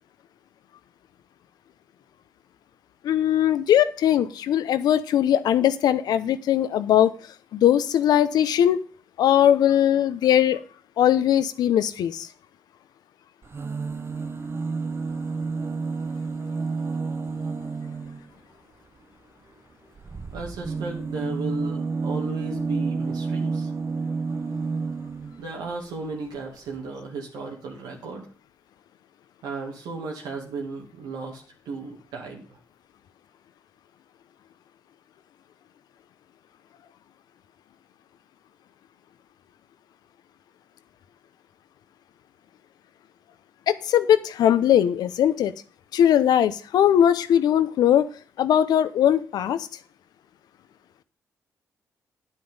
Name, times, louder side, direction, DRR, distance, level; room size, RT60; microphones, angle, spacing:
voice 1, 3.0-7.1 7.5-8.8 9.2-10.6 11.0-12.3 43.7-45.5 45.9-48.1 48.4-49.7, left 10 dB, 80° left, 13 dB, 0.8 m, -20 dB
sound 1, 13.4-18.3 19.9-25.4 26.4-26.5 26.7-26.8, right 4 dB, 35° right, 0.9 m, -30 dB
voice 2, 20.3-23.7 25.4-28.3 29.4-32.6, right 3 dB, 85° right, -1 dB, 2.4 m, -34 dB
9.4 x 8.1 x 5.4 m, 0.39 s
supercardioid pair, 60°, 7 cm